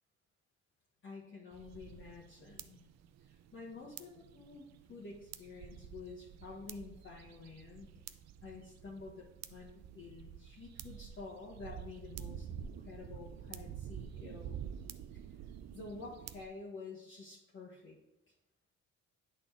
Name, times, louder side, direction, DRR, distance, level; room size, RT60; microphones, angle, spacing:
voice 1, 1.0-2.9 3.2-7.9 8.4-15.2 15.7-18.0, left 4 dB, 40° left, -4 dB, 1.3 m, -50 dB
sound 1, 1.5-16.4, right 9 dB, 60° right, 0.5 m, -49 dB
8.9 x 4.0 x 3.4 m, 0.90 s
cardioid pair, 90°, 30 cm